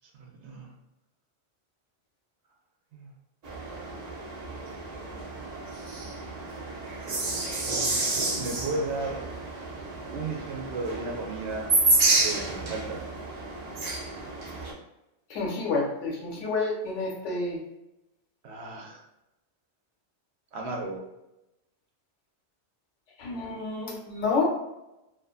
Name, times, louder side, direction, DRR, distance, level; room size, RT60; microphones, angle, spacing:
voice 1, 0.1-0.7 2.9-3.1 7.6-9.2 10.1-11.7 12.1-13.0 18.4-19.0 20.5-21.0, right 3 dB, 75° right, 1 dB, 0.9 m, -35 dB
sound 1, 3.4-14.7, right 2 dB, 45° right, 0.5 m, -30 dB
voice 2, 15.3-17.6 23.2-24.4, left 3 dB, 90° left, -2 dB, 1.1 m, -29 dB
2.5 x 2.5 x 2.3 m, 0.93 s
omnidirectional pair, 1.2 m